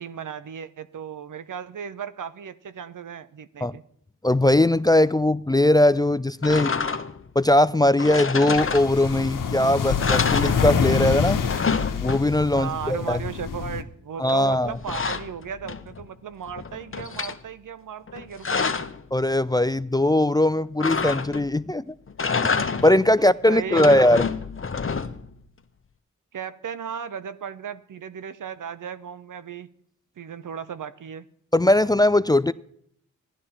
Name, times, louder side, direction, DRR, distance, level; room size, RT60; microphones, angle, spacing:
voice 1, 0.0-3.8 12.5-18.9 23.2-24.1 26.3-29.7 30.2-31.3, right 7 dB, 70° right, 0.8 m, -36 dB
voice 2, 4.2-6.8 7.4-11.4 12.0-13.2 14.2-14.8 19.1-21.8 22.4-22.6 22.8-24.3 31.5-32.5, left 1 dB, 10° left, 0.4 m, -20 dB
sound 1, 6.4-7.3 8.0-9.3 9.6-9.7 10.0-11.1 11.3-12.6 14.3-16.1 16.5-17.4 18.1-19.0 20.8-21.6 22.1-23.1 23.6-25.3, left 5 dB, 40° left, 1.0 m, -28 dB
sound 2, 8.6-13.8, left 6 dB, 75° left, 1.0 m, -26 dB
15.5 x 11.5 x 4.3 m
cardioid pair, 40°, 32 cm